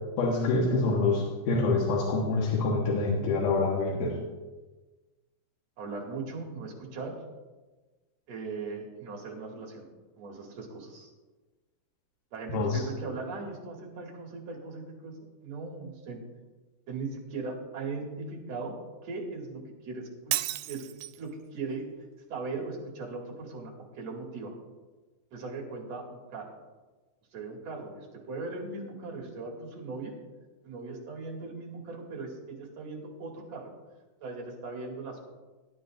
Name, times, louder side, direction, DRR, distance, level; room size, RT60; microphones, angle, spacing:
voice 1, 0.2-4.2 12.5-12.8, left 3 dB, 85° left, -3 dB, 2.9 m, -26 dB
voice 2, 5.8-7.2 8.3-9.9 10.2-11.1 12.3-16.2 16.9-18.7 19.0-20.3 20.7-20.8 21.2-21.9 22.3-24.5 25.3-26.6 27.3-30.1 30.6-33.7 34.2-35.3, right 3 dB, 60° right, -1 dB, 3.2 m, -39 dB
Shatter, 20.3-21.3, right 15 dB, 90° right, 2.1 m, -32 dB
19.5 x 10.5 x 2.6 m, 1.2 s
omnidirectional pair, 3.6 m